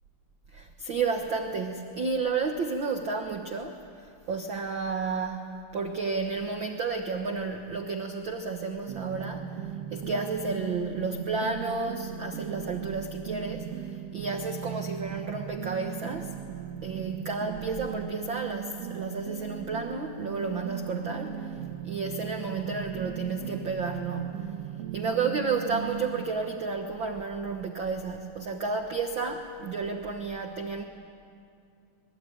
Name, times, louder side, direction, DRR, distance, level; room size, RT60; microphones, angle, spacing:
voice 1, 0.5-5.5 5.7-16.3 16.8-21.6 21.8-24.5 24.9-30.8, right 4 dB, 80° right, 4 dB, 1.0 m, -32 dB
sound 1, 8.9-26.3, right 8 dB, 60° right, 1.9 m, -38 dB
25.5 x 22.0 x 9.3 m, 2.4 s
omnidirectional pair, 4.0 m